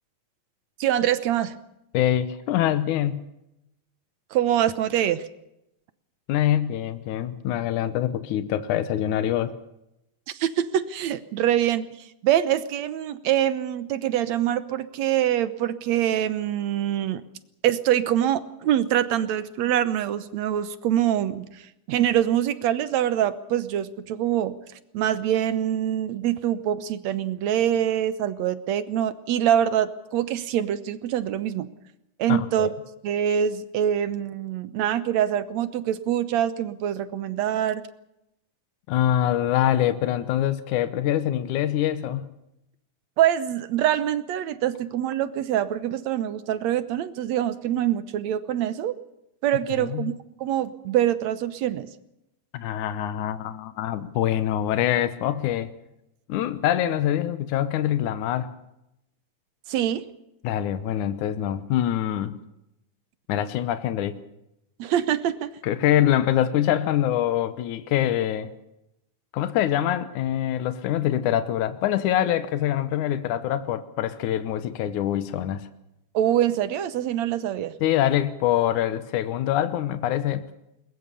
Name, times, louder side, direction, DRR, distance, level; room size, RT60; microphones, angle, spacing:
voice 1, 0.8-1.6 4.3-5.3 10.3-11.9 12.2-17.2 17.6-24.6 24.9-31.7 32.2-32.7 33.0-37.8 43.2-48.9 49.4-50.1 50.4-51.9 59.7-60.0 64.8-65.5 76.1-77.7, right 11 dB, 70° right, 14 dB, 2.1 m, -24 dB
voice 2, 1.9-3.2 6.3-9.5 32.3-32.7 38.9-42.3 49.8-50.1 52.5-55.7 56.3-58.5 60.4-62.4 63.3-64.2 65.6-68.5 69.3-75.7 77.8-80.5, left 11 dB, 80° left, 12 dB, 2.5 m, -24 dB
21.5 x 21.0 x 7.0 m, 0.85 s
omnidirectional pair, 3.5 m